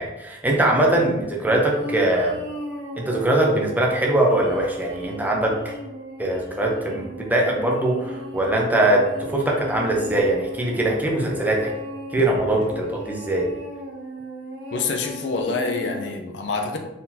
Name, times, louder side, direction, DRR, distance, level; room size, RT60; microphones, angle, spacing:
voice 1, 0.0-2.4 3.0-5.7 6.2-9.0 9.3-11.7 12.1-13.5, right 1 dB, 10° right, -1 dB, 0.7 m, -21 dB
sound 1, 1.4-16.1, equal, 85° right, 1.3 m, -37 dB
voice 2, 14.7-16.8, left 4 dB, 70° left, 3 dB, 0.6 m, -26 dB
4.4 x 3.8 x 2.8 m, 1.0 s
head